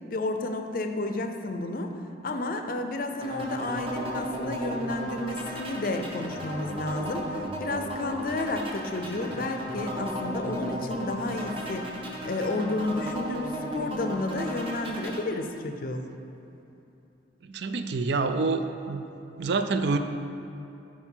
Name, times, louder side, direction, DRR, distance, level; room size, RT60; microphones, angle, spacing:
voice 1, 0.1-1.9 2.2-11.9 12.2-16.0, left 2 dB, 45° left, 6 dB, 0.5 m, -31 dB
sound 1, 3.2-15.2, equal, 25° right, 0.8 m, -35 dB
voice 2, 17.5-19.1 19.3-20.0, right 3 dB, 60° right, 8 dB, 0.4 m, -27 dB
9.7 x 4.5 x 4.5 m, 2.9 s
head